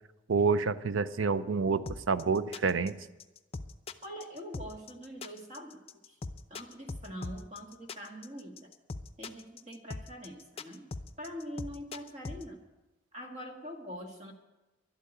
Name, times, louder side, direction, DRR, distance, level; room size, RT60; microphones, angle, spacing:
voice 1, 0.3-3.0, right 4 dB, 85° right, 14 dB, 0.6 m, -28 dB
sound 1, 1.9-12.4, left 3 dB, 30° left, 0.6 m, -41 dB
voice 2, 4.0-6.2 6.5-8.7 9.2-10.8 11.2-12.6 13.1-14.3, equal, 35° right, 3 dB, 1.6 m, -44 dB
11.5 x 8.4 x 9.8 m, 1.1 s
head